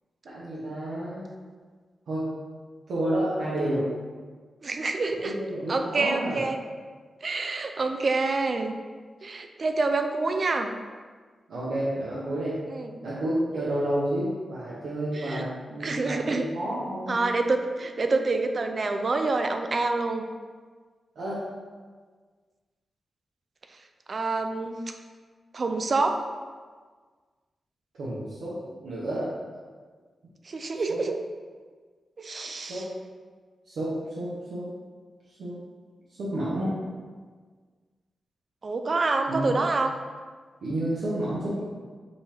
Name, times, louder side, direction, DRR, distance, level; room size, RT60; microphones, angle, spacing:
voice 1, 0.2-1.2 2.1-2.3 2.9-3.9 5.2-6.4 11.5-12.6 13.0-17.2 21.1-21.5 28.0-29.3 30.9-31.0 32.7-32.8 33.7-34.6 35.4-35.5 36.2-36.7 39.3-39.5 40.6-41.6, right 1 dB, 80° right, -9 dB, 1.0 m, -30 dB
voice 2, 4.6-5.4 5.7-6.6 7.2-8.8 9.2-10.7 12.7-12.9 15.1-15.5 15.8-16.5 17.1-20.2 24.1-24.9 25.5-26.2 30.5-31.2 32.2-32.8 38.6-39.9, right 3 dB, 50° right, 6 dB, 0.4 m, -27 dB
5.3 x 2.8 x 3.5 m, 1.5 s
cardioid pair, 70°, 0 cm